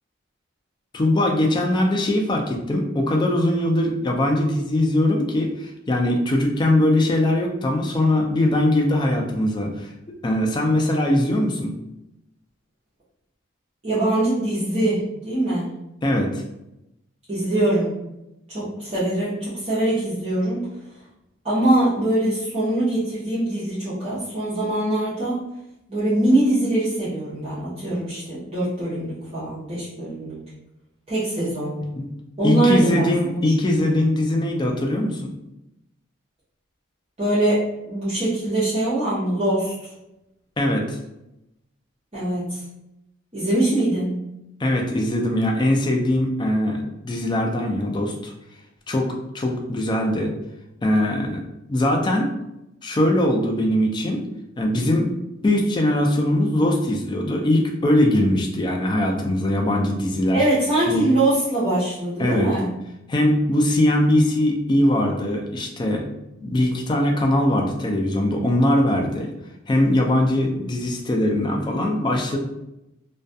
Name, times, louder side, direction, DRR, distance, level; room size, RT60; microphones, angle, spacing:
voice 1, 0.9-9.9 10.2-11.7 16.0-16.4 32.0-32.1 32.4-35.3 40.6-41.0 44.6-48.3 48.9-50.3 50.8-51.4 51.7-52.3 52.8-54.2 54.6-55.1 55.4-60.5 60.9-61.0 62.2-62.5 63.1-66.0 66.4-69.3 69.7-72.4, left 1 dB, 20° left, 1 dB, 0.3 m, -21 dB
voice 2, 13.8-15.7 17.3-18.0 18.5-20.6 21.4-25.4 25.9-30.4 31.1-31.8 32.4-33.4 37.2-39.7 42.1-42.6 43.3-44.2 60.3-62.7, right 1 dB, 30° right, -12 dB, 0.7 m, -23 dB
2.3 x 2.1 x 2.6 m, 0.89 s
head